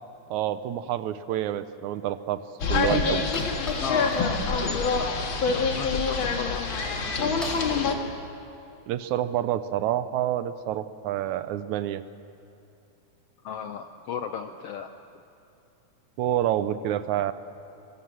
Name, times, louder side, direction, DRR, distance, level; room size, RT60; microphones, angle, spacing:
voice 1, 0.3-2.4 2.7-3.3 8.9-12.0 16.2-17.3, right 12 dB, 75° right, 13 dB, 2.0 m, -28 dB
sound 1, 1.3-1.4 2.0-2.1 2.3-2.4 2.7-2.8 3.1-4.3 4.6-5.0 5.4-5.6 6.3-6.4 7.0-7.1 7.4-8.9, equal, ahead, 3.7 m, -41 dB
sound 2, 2.6-7.9, left 4 dB, 45° left, 2.2 m, -26 dB
voice 2, 3.8-4.8 5.5-6.6 13.4-14.9, left 6 dB, 75° left, 7 dB, 1.4 m, -34 dB
24.5 x 22.5 x 7.6 m, 2.7 s
omnidirectional pair, 3.6 m